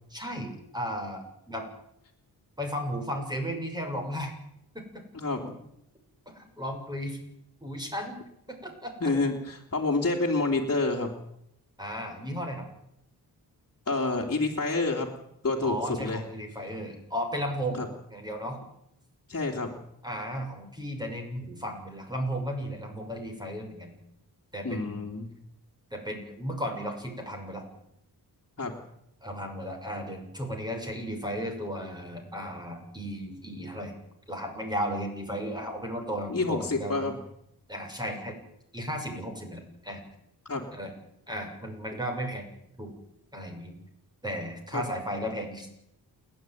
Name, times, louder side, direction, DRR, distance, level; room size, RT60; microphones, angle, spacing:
voice 1, 0.1-1.7 2.6-4.4 4.7-5.0 6.3-7.2 7.6-8.2 8.5-9.1 11.8-12.7 15.6-17.8 18.1-18.6 20.0-23.9 24.5-25.1 25.9-27.6 29.2-33.9 34.3-37.2 37.7-38.4 38.7-40.0 40.7-40.9 41.3-42.5 42.8-42.9 43.3-43.7 44.2-45.7, equal, 10° right, 3 dB, 6.4 m, -35 dB
voice 2, 5.1-5.5 9.0-11.1 13.9-15.1 15.4-16.2 17.8-17.9 19.3-19.7 24.6-25.3 28.6-28.7 36.3-37.1 40.4-40.6 44.7-44.8, left 3 dB, 35° left, -3 dB, 3.2 m, -28 dB
29.0 x 11.0 x 9.4 m, 0.79 s
cardioid pair, 90°, 39 cm